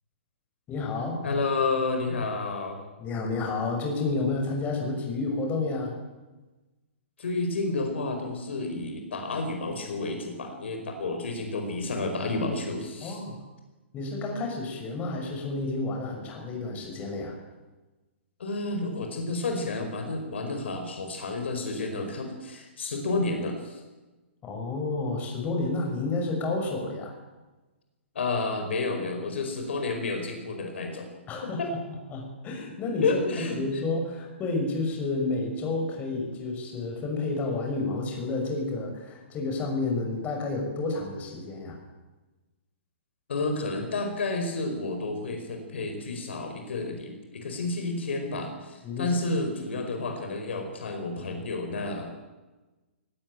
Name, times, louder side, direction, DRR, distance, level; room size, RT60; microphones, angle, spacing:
voice 1, 0.7-1.2 3.0-5.9 13.0-13.4 13.9-17.4 24.4-27.1 31.3-41.8 48.8-49.1, left 3 dB, 20° left, 2 dB, 6.0 m, -30 dB
voice 2, 1.2-2.8 7.2-13.2 18.4-23.8 28.1-31.1 31.5-31.6 33.0-33.6 43.3-52.1, left 3 dB, 65° left, 4 dB, 4.9 m, -30 dB
18.5 x 18.0 x 9.0 m, 1.2 s
figure-of-eight pair, 125°, 7 cm